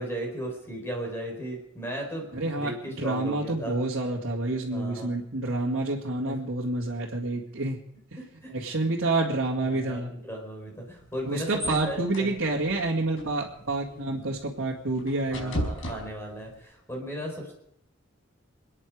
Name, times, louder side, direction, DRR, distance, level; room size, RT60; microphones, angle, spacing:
voice 1, 0.0-2.3 2.5-3.8 4.7-5.1 6.3-6.4 8.2-8.5 9.6-12.3 13.9-14.3 15.3-17.5, right 1 dB, 10° left, 1 dB, 4.4 m, -36 dB
voice 2, 2.3-7.8 8.1-8.2 8.5-10.1 11.2-15.6, right 2 dB, 70° right, -3 dB, 2.3 m, -28 dB
sound 1, 10.9-16.6, equal, 70° left, 4.9 m, -38 dB
28.5 x 10.0 x 4.9 m, 0.75 s
head